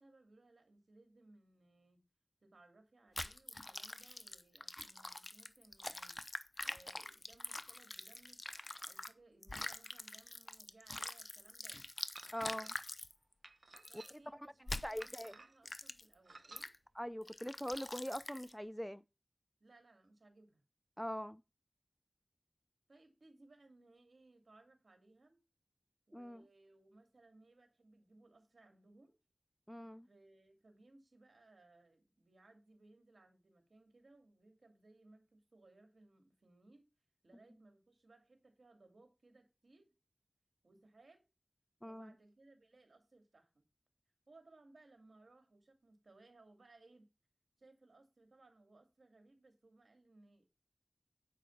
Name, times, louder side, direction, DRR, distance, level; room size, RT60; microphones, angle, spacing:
voice 1, 0.0-2.0 2.4-6.2 6.6-11.9 13.9-16.7 19.6-20.6 22.9-25.4 26.1-29.2 30.0-36.9 37.2-40.0 40.6-41.3 41.8-43.6 44.3-47.1 47.6-50.5, right 2 dB, 85° right, 2.6 m, -65 dB
sound 1, 3.2-9.1 9.4-13.1 13.8-14.1 14.7-15.3 15.7-16.1 16.6-16.8 17.3-18.5, left 2 dB, 35° left, 0.7 m, -45 dB
sound 2, 12.1-12.7 13.4-14.4 15.0-15.7 16.2-16.7, right 3 dB, 70° right, 0.9 m, -57 dB
voice 2, 12.3-12.7 14.8-15.4 17.0-19.0 21.0-21.4 26.1-26.4 29.7-30.1 41.8-42.1, equal, 5° left, 0.5 m, -42 dB
9.4 x 5.1 x 7.2 m
wide cardioid pair, 60°, 0 cm